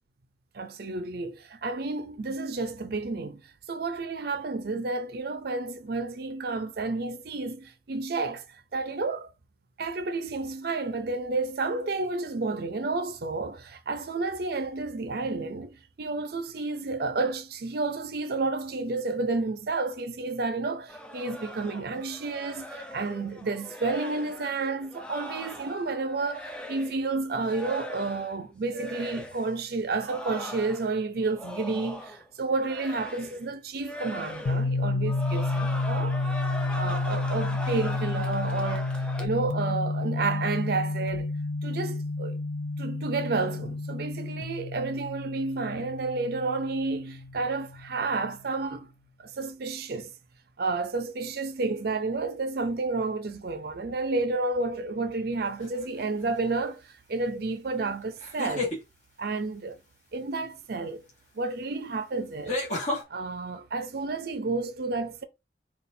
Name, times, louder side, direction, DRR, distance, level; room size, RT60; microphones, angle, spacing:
voice 1, 0.5-3.4 3.7-9.3 9.8-36.2 36.8-41.3 41.6-42.4 42.8-48.9 49.2-50.1 50.6-58.7 59.2-59.8 60.1-61.1 61.3-62.6 63.1-65.2, right 3 dB, 60° right, 0.5 m, -31 dB
sound 1, 20.9-27.0 27.4-28.4 28.7-29.5 29.9-32.3 32.5-33.5 33.8-34.7 35.0-39.3, left 1 dB, 5° left, 0.4 m, -40 dB
sound 2, 34.5-48.1, left 2 dB, 75° left, 0.5 m, -31 dB
sound 3, 55.6-56.0 58.2-58.8 61.1-61.2 62.5-63.0, left 2 dB, 40° left, 1.2 m, -30 dB
4.1 x 2.4 x 2.6 m
head